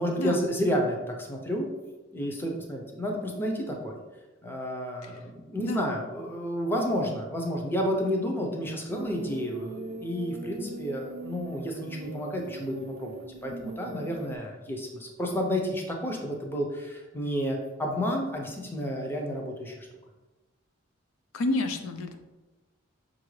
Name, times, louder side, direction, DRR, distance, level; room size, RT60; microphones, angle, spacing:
voice 1, 0.0-1.7 2.1-4.0 4.4-13.1 13.4-19.9, equal, 10° left, 0 dB, 0.5 m, -31 dB
voice 2, 5.6-5.9 21.3-22.2, left 2 dB, 80° left, 6 dB, 0.4 m, -29 dB
sound 1, 8.9-14.4, right 3 dB, 55° right, 0.3 m, -41 dB
5.6 x 2.5 x 3.1 m, 1.1 s
head